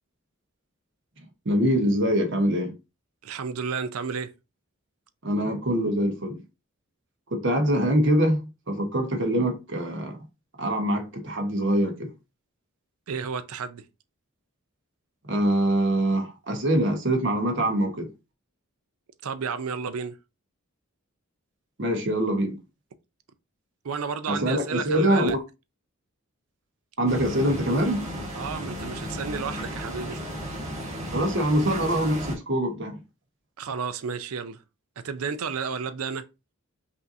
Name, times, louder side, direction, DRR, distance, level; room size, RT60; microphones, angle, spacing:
voice 1, 1.4-2.7 5.2-6.4 7.3-8.4 8.7-10.2 10.6-12.1 15.3-18.1 21.8-22.6 24.3-25.4 27.0-28.1 31.1-33.0, right 1 dB, 55° right, 1.1 m, -24 dB
voice 2, 3.2-4.3 13.1-13.9 19.2-20.2 23.8-25.3 28.3-30.2 33.6-34.6 35.0-36.2, right 5 dB, 80° right, 0.5 m, -32 dB
sound 1, 27.1-32.4, equal, 30° right, 1.5 m, -34 dB
5.5 x 2.7 x 2.6 m
head